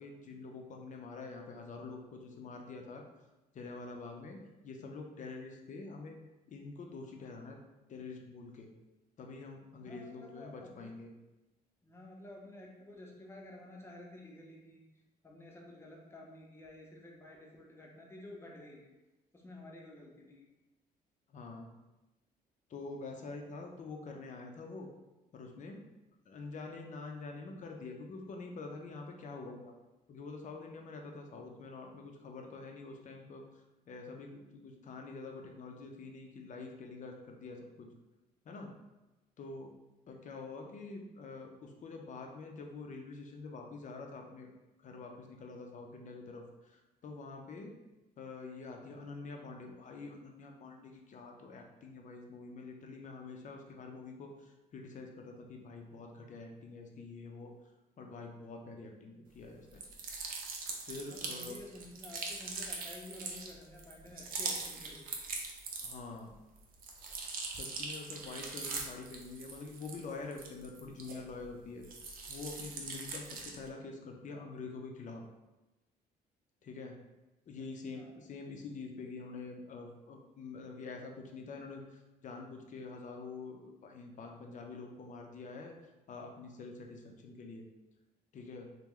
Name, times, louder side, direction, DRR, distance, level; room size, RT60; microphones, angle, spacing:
voice 1, 0.0-3.0 3.5-4.4 4.6-6.2 6.5-7.6 7.9-8.7 9.2-11.1 21.3-21.7 22.7-24.9 25.3-25.8 26.3-29.7 30.1-33.4 33.9-37.9 38.4-38.7 39.4-39.7 40.1-44.5 44.8-47.7 48.2-57.5 58.0-59.8 60.8-61.6 65.8-66.3 67.6-71.8 72.3-75.2 76.6-77.0 77.5-85.7 86.1-87.6 88.3-88.7, left 3 dB, 50° left, 2 dB, 0.6 m, -46 dB
voice 2, 9.8-10.9 11.8-14.8 15.2-18.9 19.3-20.4 40.1-40.2 61.1-65.1 77.9-78.1, left 1 dB, 15° left, -2 dB, 0.7 m, -51 dB
sound 1, 59.7-66.2 66.6-71.5 71.8-73.7, right 4 dB, 65° right, 0.6 m, -42 dB
3.1 x 2.2 x 3.7 m, 1.0 s
cardioid pair, 100°, 16 cm